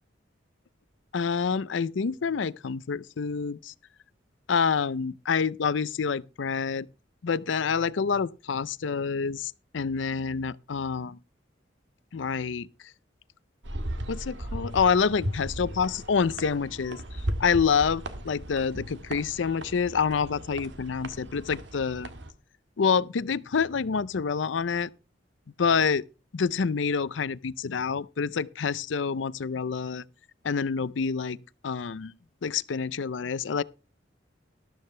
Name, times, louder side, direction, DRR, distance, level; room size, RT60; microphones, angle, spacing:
voice 1, 1.1-3.7 4.5-6.9 7.2-11.2 12.1-12.7 14.1-17.0 17.4-22.1 22.8-24.9 25.6-26.0 26.3-30.0 30.4-31.4 31.6-32.1 32.4-33.6, left 6 dB, 80° left, 0.5 m, -27 dB
sound 1, 13.6-22.3, right 1 dB, 75° right, 1.8 m, -36 dB
13.0 x 12.5 x 3.3 m
head